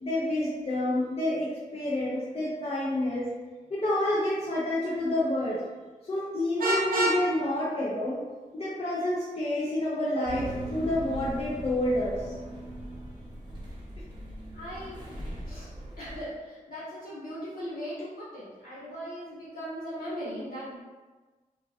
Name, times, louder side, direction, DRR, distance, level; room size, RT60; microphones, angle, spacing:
voice 1, 0.0-3.3 3.7-5.6 6.1-8.2 8.5-12.3, left 1 dB, 45° left, -8 dB, 0.6 m, -28 dB
Vehicle horn car horn honking, 6.6-7.2, right 1 dB, 85° right, 0.5 m, -26 dB
sound 1, 10.3-16.2, right 1 dB, 30° right, 0.6 m, -39 dB
voice 2, 14.5-15.0 15.5-15.7 16.0-20.8, equal, 70° left, -10 dB, 1.2 m, -38 dB
3.6 x 2.3 x 2.4 m, 1.3 s
wide cardioid pair, 115°, 15 cm